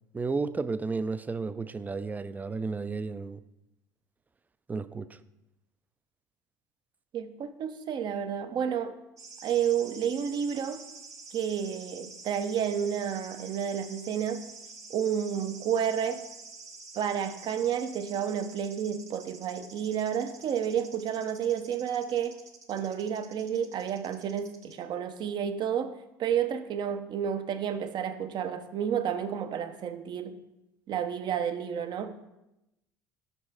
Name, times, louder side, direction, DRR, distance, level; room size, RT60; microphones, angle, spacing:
voice 1, 0.1-3.4 4.7-5.2, right 4 dB, 15° right, 0.3 m, -32 dB
voice 2, 7.1-8.9 9.4-10.8 11.3-14.4 14.9-16.2 17.0-22.4 22.7-30.4 30.9-32.1, right 8 dB, 50° right, 0.6 m, -31 dB
sound 1, 9.2-24.7, right 4 dB, 35° right, 1.0 m, -48 dB
5.3 x 5.2 x 4.8 m
supercardioid pair, 80°, 10 cm